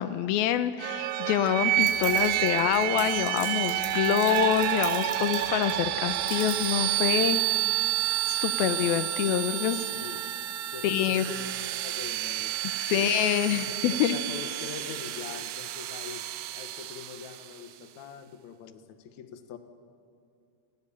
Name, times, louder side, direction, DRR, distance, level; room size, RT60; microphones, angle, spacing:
voice 1, 0.0-7.4 8.3-9.9 10.8-11.2 12.8-14.2, left 11 dB, 85° left, 11 dB, 2.6 m, -26 dB
sound 1, 0.8-17.5, right 14 dB, 75° right, 1.9 m, -29 dB
Cables Clinking, 1.8-6.8, equal, 15° left, 7.4 m, -42 dB
voice 2, 9.9-12.5 12.9-13.1 13.7-16.2 16.5-19.6, left 7 dB, 60° left, 7 dB, 2.4 m, -43 dB
29.5 x 18.5 x 8.7 m, 2.3 s
omnidirectional pair, 4.2 m